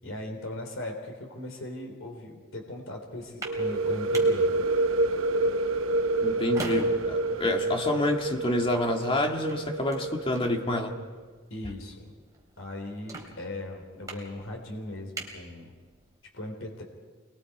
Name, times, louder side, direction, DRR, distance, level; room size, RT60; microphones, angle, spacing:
voice 1, 0.0-4.5 11.5-12.1 12.6-15.7 16.3-16.8, left 1 dB, 70° left, 2 dB, 3.3 m, -38 dB
sound 1, 3.1-16.2, right 2 dB, 15° right, 3.6 m, -45 dB
sound 2, 3.4-11.1, right 2 dB, 80° right, 0.9 m, -28 dB
voice 2, 6.2-11.0, left 1 dB, 25° left, 3 dB, 1.8 m, -28 dB
27.5 x 22.0 x 4.9 m, 1.5 s
head